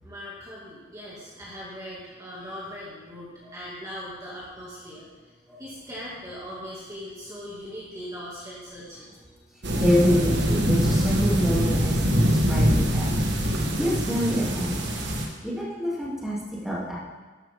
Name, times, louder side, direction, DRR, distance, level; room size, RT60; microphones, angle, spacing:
voice 1, 0.0-5.1 5.6-9.1, equal, 15° right, -8 dB, 2.4 m, -40 dB
sound 1, 9.6-15.3, equal, 60° right, 1.7 m, -23 dB
voice 2, 9.8-13.1 13.8-14.7 15.4-16.4 16.6-17.0, equal, ahead, -8 dB, 2.8 m, -26 dB
13.0 x 11.5 x 3.7 m, 1.3 s
head